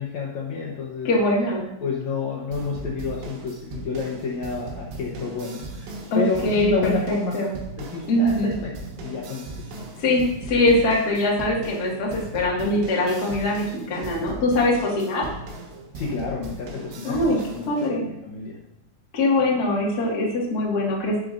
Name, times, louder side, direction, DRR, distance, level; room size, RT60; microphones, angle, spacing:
voice 1, 0.0-1.1 1.8-7.3 7.9-8.3 8.6-8.7 9.0-9.5 15.9-18.6, left 5 dB, 90° left, -4 dB, 1.5 m, -30 dB
voice 2, 1.0-1.7 6.1-7.5 8.1-8.5 10.0-15.2 17.0-17.4 17.7-18.1 19.1-21.2, left 1 dB, 50° left, -3 dB, 1.1 m, -22 dB
sound 1, 2.5-17.9, right 2 dB, 90° right, 3.7 m, -38 dB
11.0 x 7.6 x 2.6 m, 0.82 s
omnidirectional pair, 4.9 m